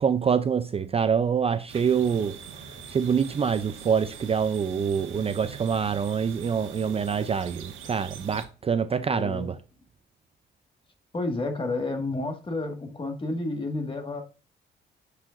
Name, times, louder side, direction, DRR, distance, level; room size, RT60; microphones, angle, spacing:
voice 1, 0.0-2.4 2.9-9.6, right 7 dB, 30° right, 0.4 m, -25 dB
sound 1, 1.7-8.5, right 7 dB, 80° right, 1.4 m, -43 dB
voice 2, 9.0-9.5 11.1-14.2, left 2 dB, 25° left, 1.7 m, -30 dB
8.4 x 4.9 x 2.5 m
cardioid pair, 90°, 20 cm